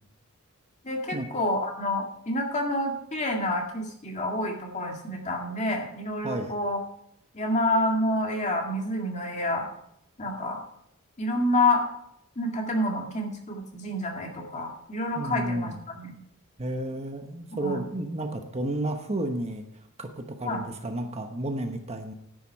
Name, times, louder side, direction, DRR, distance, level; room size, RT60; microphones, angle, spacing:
voice 1, 0.8-6.8 7.3-9.7 10.2-10.6 11.2-11.9 12.4-16.1 17.6-17.8 20.4-20.6, left 1 dB, 35° left, 1 dB, 2.0 m, -28 dB
voice 2, 15.2-15.8 16.6-22.1, right 1 dB, 30° right, 5 dB, 1.0 m, -32 dB
10.5 x 9.3 x 4.6 m, 0.73 s
head